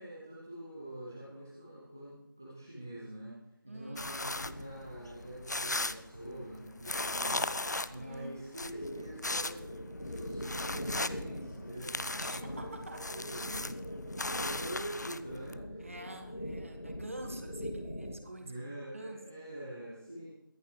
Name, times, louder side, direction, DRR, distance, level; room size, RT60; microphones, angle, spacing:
voice 1, 0.0-3.3 3.6-7.5 7.9-12.7 13.1-13.8 14.4-15.8 18.4-20.3, right 1 dB, 5° right, -7 dB, 0.6 m, -45 dB
voice 2, 3.7-4.2 8.0-8.4 12.2-13.1 15.8-19.4, right 1 dB, 35° right, 5 dB, 1.5 m, -46 dB
sound 1, 4.0-15.6, left 2 dB, 50° left, 0.5 m, -38 dB
sound 2, 8.6-18.3, equal, 85° left, 2.5 m, -42 dB
23.0 x 8.2 x 3.2 m, 0.90 s
figure-of-eight pair, 170°, 12 cm